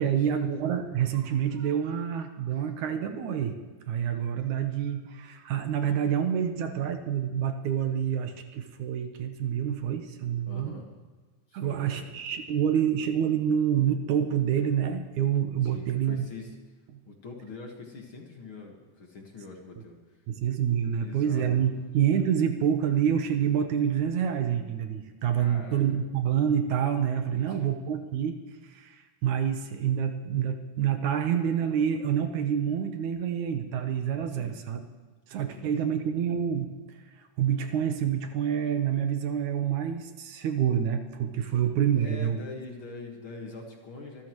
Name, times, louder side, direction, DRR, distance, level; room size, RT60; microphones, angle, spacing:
voice 1, 0.0-3.6 3.9-10.8 11.5-16.3 20.3-28.4 28.6-34.8 35.3-37.0 37.4-42.4, right 9 dB, 70° right, 7 dB, 2.3 m, -27 dB
voice 2, 10.5-10.9 11.5-12.0 15.6-16.6 17.1-20.2 20.9-21.7 25.4-26.0 27.3-27.7 34.3-34.6 35.5-36.0 42.0-44.3, left 3 dB, 45° left, 1 dB, 2.1 m, -44 dB
25.0 x 14.0 x 3.1 m, 1.4 s
omnidirectional pair, 3.7 m